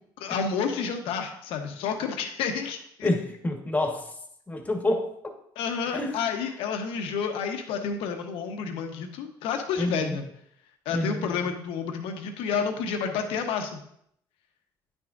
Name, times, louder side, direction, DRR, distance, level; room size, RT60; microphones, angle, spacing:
voice 1, 0.2-3.1 5.6-10.3 10.8-13.8, left 6 dB, 85° left, 4 dB, 1.1 m, -30 dB
voice 2, 3.0-4.1 4.5-5.1 5.9-6.1 9.8-10.2 10.9-11.3, left 1 dB, 15° left, 3 dB, 1.5 m, -27 dB
10.0 x 6.1 x 2.6 m, 0.72 s
cardioid pair, 90°, 9 cm